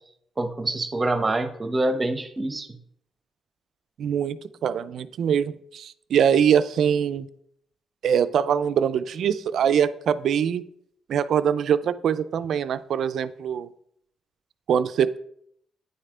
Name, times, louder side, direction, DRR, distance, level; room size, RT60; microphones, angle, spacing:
voice 1, 0.4-2.7, right 2 dB, 25° right, 7 dB, 0.8 m, -26 dB
voice 2, 4.0-7.3 8.0-10.6 11.1-13.7 14.7-15.2, right 8 dB, 65° right, 13 dB, 0.3 m, -23 dB
9.6 x 3.3 x 3.6 m, 0.70 s
cardioid pair, 90°, 0 cm